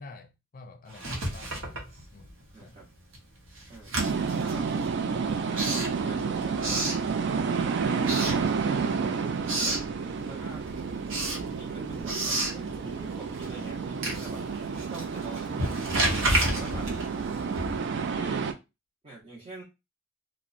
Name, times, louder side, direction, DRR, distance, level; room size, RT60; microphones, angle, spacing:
voice 1, 0.0-1.8 2.1-2.8 10.6-11.1 16.5-16.8, left 3 dB, 45° left, 0.5 m, -49 dB
Writing, 0.9-2.5 2.8-7.6 8.0-9.0 9.2-9.9 10.3-18.0, right 2 dB, 85° right, 0.9 m, -32 dB
voice 2, 2.5-2.9 3.6-3.9 4.4-4.7 5.2-6.9 7.8-9.8 10.2-10.6 11.6-14.4 14.9-15.8 16.4-16.9 18.0-18.5 19.0-19.6, right 2 dB, 35° right, 0.7 m, -44 dB
sound 1, 4.0-18.5, right 5 dB, 60° right, 0.4 m, -30 dB
2.8 x 2.1 x 2.5 m
head